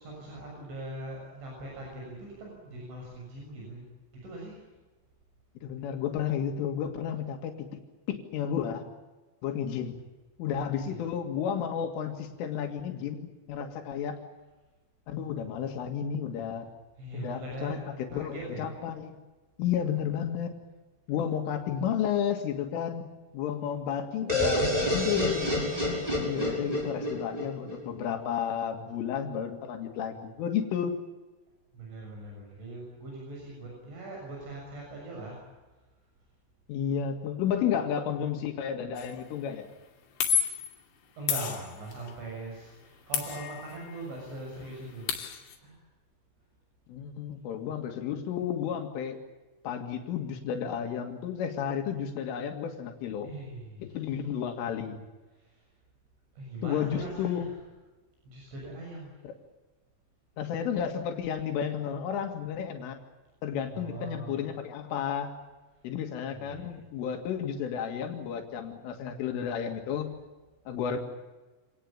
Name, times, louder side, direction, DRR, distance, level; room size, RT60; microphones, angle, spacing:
voice 1, 0.0-3.9 4.2-4.6 10.8-11.0 17.0-17.8 18.1-18.7 19.7-20.2 31.7-35.4 41.2-45.2 45.6-45.8 53.2-54.3 55.4-55.6 56.4-57.7 58.3-59.1 63.7-64.5 66.3-66.8, right 2 dB, 75° right, -1 dB, 9.4 m, -41 dB
voice 2, 5.6-7.8 8.1-8.8 9.4-10.0 10.4-14.2 15.1-16.7 17.1-19.2 19.6-20.5 21.1-23.1 23.3-25.7 26.2-31.0 36.7-39.7 46.9-49.2 49.6-53.3 53.8-55.0 56.6-57.5 59.2-59.3 60.4-63.0 63.4-65.4 65.8-70.1 70.7-71.0, left 8 dB, 90° left, 4 dB, 4.6 m, -32 dB
sound 1, 24.3-28.1, left 1 dB, 5° right, 6.4 m, -28 dB
sound 2, 39.0-39.2 40.2-40.8 41.3-42.1 43.1-44.0 44.3-44.4 44.7-45.6, left 8 dB, 70° left, 4.7 m, -31 dB
27.0 x 19.0 x 8.9 m, 1.2 s
omnidirectional pair, 5.5 m